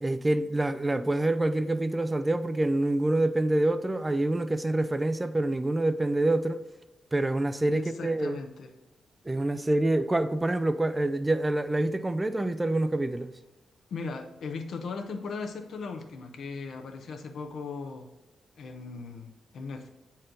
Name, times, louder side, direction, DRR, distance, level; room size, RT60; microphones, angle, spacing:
voice 1, 0.0-6.6 7.1-8.4 9.3-13.3, right 1 dB, 15° right, 0.4 m, -26 dB
voice 2, 7.7-8.7 13.9-18.1 18.6-19.9, left 4 dB, 75° left, 0.9 m, -38 dB
7.9 x 4.3 x 3.8 m
wide cardioid pair, 125°, 0 cm